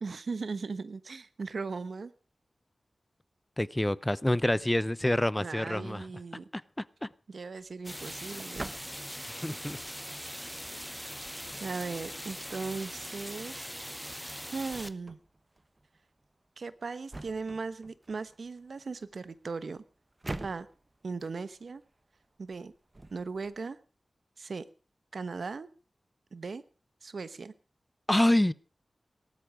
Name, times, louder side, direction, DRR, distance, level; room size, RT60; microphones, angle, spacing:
voice 1, 0.0-2.1 5.4-6.5 7.3-8.7 11.6-13.7 14.5-15.2 16.6-19.8 20.4-20.7 21.0-21.8 22.4-22.7 23.1-23.8 24.4-24.6 25.1-25.7 26.3-26.6 27.0-27.5, right 4 dB, 75° right, 14 dB, 1.1 m, -38 dB
voice 2, 3.6-6.1 6.5-7.1 9.3-9.8 28.1-28.5, left 1 dB, 15° left, 19 dB, 0.7 m, -27 dB
sound 1, 7.4-23.6, right 2 dB, 35° right, 1.3 m, -49 dB
sound 2, 7.8-14.9, equal, ahead, 1.0 m, -41 dB
18.5 x 12.5 x 4.9 m, 0.37 s
wide cardioid pair, 80°, 0 cm